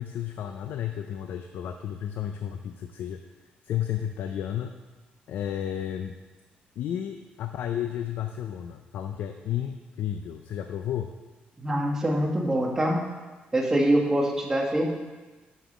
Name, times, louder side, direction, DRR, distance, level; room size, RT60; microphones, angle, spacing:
voice 1, 0.0-3.2 3.6-4.7 5.3-6.2 6.8-11.1, left 10 dB, 75° left, 6 dB, 0.5 m, -32 dB
voice 2, 11.6-13.0 13.5-14.9, right 1 dB, 15° right, -1 dB, 1.2 m, -24 dB
8.2 x 6.2 x 5.1 m, 1.2 s
cardioid pair, 155°, 3 cm